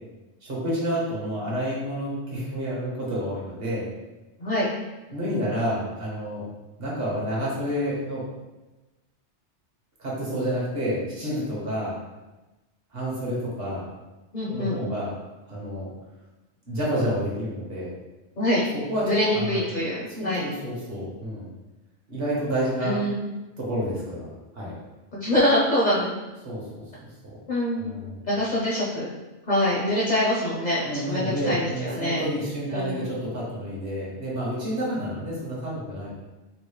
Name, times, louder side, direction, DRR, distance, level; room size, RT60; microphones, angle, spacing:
voice 1, 0.4-3.8 5.1-6.4 6.8-8.2 10.0-11.9 12.9-13.8 14.5-15.1 15.5-15.9 16.7-17.9 18.9-19.6 20.2-21.5 22.1-23.0 23.6-24.3 24.5-24.7 26.4-27.1 27.7-28.2 30.8-36.1, equal, 55° right, -6 dB, 1.2 m, -29 dB
voice 2, 14.3-14.8 18.4-18.7 19.0-20.4 22.8-23.2 25.1-26.1 27.5-28.0 28.3-29.1 29.5-32.2 32.7-33.1, left 1 dB, 50° left, -6 dB, 0.6 m, -24 dB
3.9 x 2.0 x 3.1 m, 1.1 s
omnidirectional pair, 1.2 m